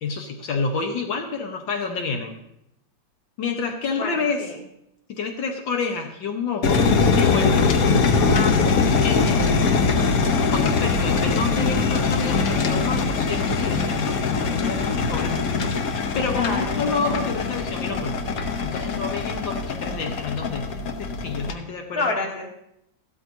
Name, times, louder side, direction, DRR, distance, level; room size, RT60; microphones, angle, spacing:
voice 1, 0.0-2.4 3.4-4.5 5.2-6.8 7.2-8.7 9.0-9.8 10.4-15.4 16.2-18.2 18.6-22.2, left 4 dB, 75° left, 3 dB, 1.8 m, -29 dB
voice 2, 4.0-4.6 16.3-16.8 21.9-22.5, left 3 dB, 30° left, 0 dB, 1.8 m, -28 dB
sound 1, 6.6-21.5, left 4 dB, 55° left, 1.2 m, -22 dB
14.5 x 12.5 x 2.7 m, 0.80 s
omnidirectional pair, 2.1 m